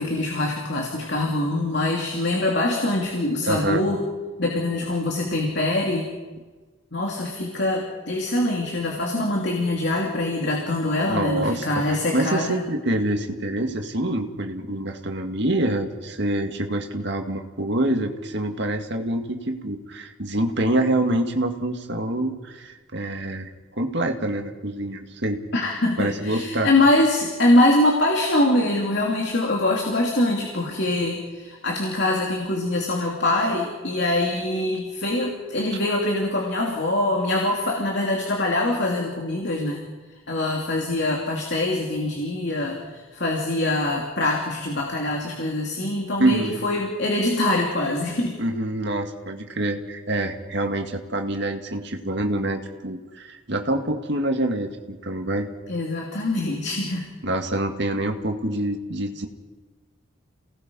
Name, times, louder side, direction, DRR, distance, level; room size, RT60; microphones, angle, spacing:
voice 1, 0.0-4.0 4.4-6.1 6.9-12.5 25.5-39.8 40.3-48.4 55.7-57.1, left 1 dB, 55° left, -1 dB, 3.1 m, -23 dB
voice 2, 3.5-3.8 11.1-23.5 23.8-25.4 26.0-26.7 46.2-46.5 48.4-55.5 57.2-59.3, right 1 dB, 55° right, 4 dB, 2.1 m, -26 dB
29.0 x 19.0 x 5.5 m, 1.3 s
head